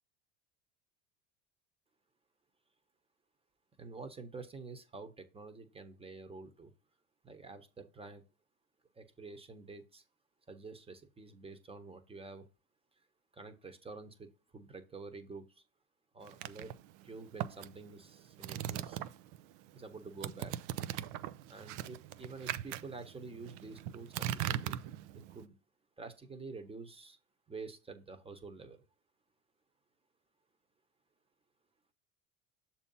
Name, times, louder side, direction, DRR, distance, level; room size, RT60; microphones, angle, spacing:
voice 1, 3.8-6.7 7.2-8.2 8.9-10.0 10.5-12.5 13.3-15.6 16.1-16.7 17.0-19.0 19.7-20.5 21.5-24.8 25.1-25.6 26.0-27.2 27.5-28.8, right 4 dB, 15° right, 8 dB, 1.0 m, -48 dB
sound 1, 16.3-19.4 19.7-25.5, right 12 dB, 65° right, 0.6 m, -40 dB
6.7 x 2.9 x 5.4 m, 0.31 s
hypercardioid pair, 95°, 40 cm